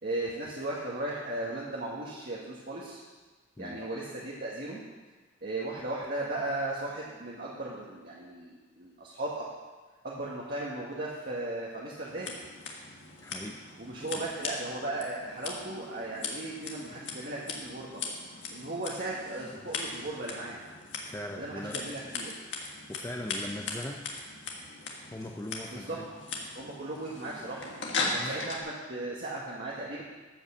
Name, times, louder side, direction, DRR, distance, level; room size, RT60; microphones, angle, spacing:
voice 1, 0.0-3.0 3.6-4.8 5.4-9.4 10.0-12.4 13.8-18.0 18.5-20.6 21.4-22.3 25.7-26.0 26.5-27.7 28.1-30.0, right 2 dB, 50° right, -6 dB, 1.5 m, -36 dB
Scissors, 12.1-28.6, left 3 dB, 70° left, 1.7 m, -39 dB
voice 2, 13.2-13.6 14.0-14.2 21.0-21.8 22.6-24.0 25.1-26.1 28.0-28.3, left 1 dB, 15° left, 3 dB, 0.6 m, -40 dB
13.0 x 5.4 x 7.1 m, 1.3 s
head